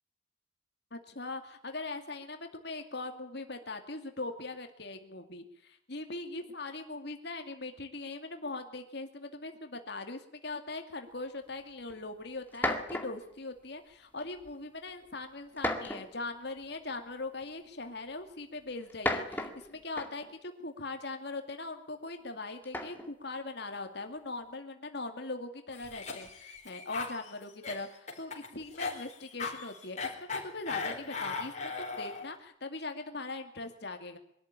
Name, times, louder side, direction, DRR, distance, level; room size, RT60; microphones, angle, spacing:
voice 1, 0.9-34.2, left 3 dB, 60° left, 6 dB, 2.3 m, -41 dB
sound 1, 11.9-12.0 12.5-13.3 14.2-14.5 15.6-16.3 17.4-17.5 18.8-20.3 22.6-23.1, left 1 dB, 10° left, 2.0 m, -34 dB
Cough, 25.7-32.3, left 4 dB, 35° left, 4.6 m, -38 dB
23.5 x 13.0 x 8.9 m, 0.73 s
head